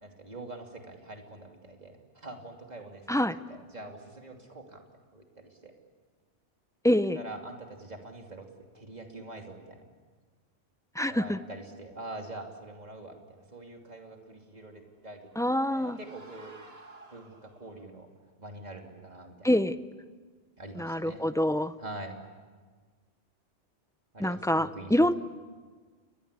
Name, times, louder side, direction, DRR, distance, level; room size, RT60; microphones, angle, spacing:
voice 1, 0.0-4.8 5.1-5.7 7.1-8.5 8.7-9.8 11.0-16.5 17.1-18.1 18.4-19.5 20.6-21.2 21.8-22.2 24.1-25.1, right 2 dB, 35° right, 2 dB, 3.0 m, -44 dB
voice 2, 6.8-7.2 11.0-11.4 15.4-16.0 19.4-19.8 20.8-21.7 24.2-25.1, left 1 dB, 5° left, 12 dB, 0.4 m, -26 dB
sound 1, 14.9-17.9, right 2 dB, 60° right, 2.5 m, -53 dB
29.0 x 22.0 x 8.3 m, 1.5 s
omnidirectional pair, 1.2 m